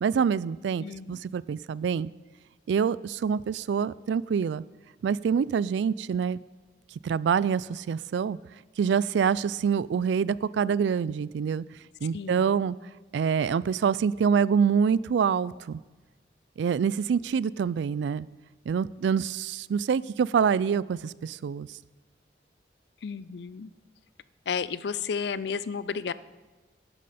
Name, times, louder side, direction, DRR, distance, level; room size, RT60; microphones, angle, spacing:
voice 1, 0.0-2.1 2.7-4.6 5.0-6.4 7.0-8.4 8.8-11.6 12.0-12.8 13.1-15.8 16.6-18.3 18.7-21.7, right 6 dB, 80° right, 20 dB, 0.3 m, -26 dB
voice 2, 0.8-1.2 12.1-12.5 23.0-23.7 24.5-26.1, left 6 dB, 70° left, 16 dB, 0.4 m, -32 dB
11.5 x 11.0 x 4.2 m, 1.2 s
head